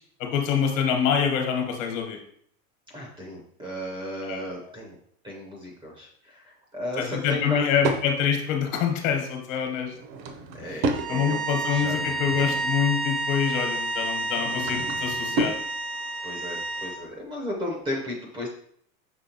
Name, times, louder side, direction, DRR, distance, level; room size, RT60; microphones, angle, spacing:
voice 1, 0.2-2.2 4.2-4.5 7.0-9.9 10.7-15.5, left 7 dB, 65° left, 4 dB, 1.1 m, -26 dB
voice 2, 2.9-5.0 5.2-7.7 10.6-12.0 15.3-15.5 16.2-18.5, equal, 10° right, -1 dB, 0.5 m, -34 dB
Drawer open or close / Wood, 7.1-8.1 9.8-11.1 11.6-12.8 14.1-15.6, right 2 dB, 50° right, 0.7 m, -32 dB
sound 1, 10.9-17.0, right 2 dB, 75° right, 0.9 m, -30 dB
5.8 x 3.2 x 2.8 m, 0.65 s
supercardioid pair, 145°, 43 cm